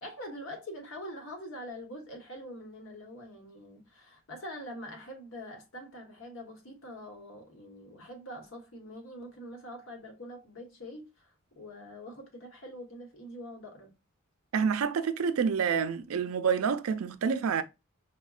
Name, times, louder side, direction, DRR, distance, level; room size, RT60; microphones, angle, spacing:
voice 1, 0.0-11.3 11.6-13.9, equal, 70° left, 1.1 m, -44 dB
voice 2, 14.5-17.6, right 6 dB, 80° right, 0.4 m, -28 dB
5.0 x 2.1 x 2.4 m
head